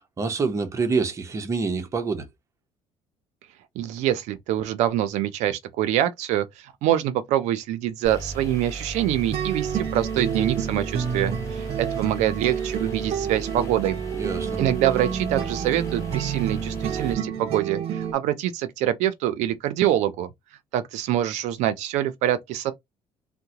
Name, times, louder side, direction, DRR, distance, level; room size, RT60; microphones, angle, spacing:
voice 1, 0.0-2.3 14.1-14.6, right 4 dB, 25° right, 0.7 m, -26 dB
voice 2, 3.8-14.0 14.6-20.3 20.7-22.7, right 12 dB, 80° right, 0.5 m, -25 dB
sound 1, 8.0-17.1, right 3 dB, 25° left, 1.1 m, -36 dB
sound 2, 9.3-18.1, right 8 dB, 55° right, 0.8 m, -29 dB
3.7 x 2.1 x 2.8 m
cardioid pair, 125°, 12 cm